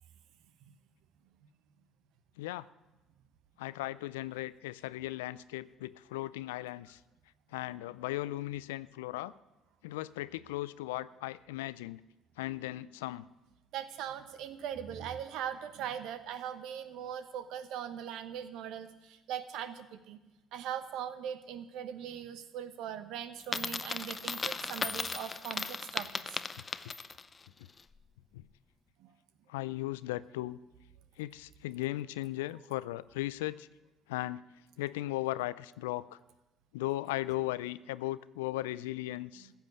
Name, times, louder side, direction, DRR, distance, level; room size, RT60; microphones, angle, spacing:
voice 1, 3.6-7.0 7.5-9.3 9.8-12.0 12.4-13.3 26.8-26.9 28.3-28.4 29.5-30.6 31.2-33.7 34.1-34.4 34.8-36.2 36.7-39.5, left 17 dB, 80° left, 18 dB, 0.4 m, -37 dB
voice 2, 13.7-20.2 20.5-26.2 29.0-29.1 39.4-39.5, right 9 dB, 65° right, 11 dB, 1.1 m, -40 dB
Coin (dropping), 23.4-27.3, left 4 dB, 30° left, 0.6 m, -36 dB
15.0 x 7.4 x 8.1 m, 1.1 s
hypercardioid pair, 55°, 0 cm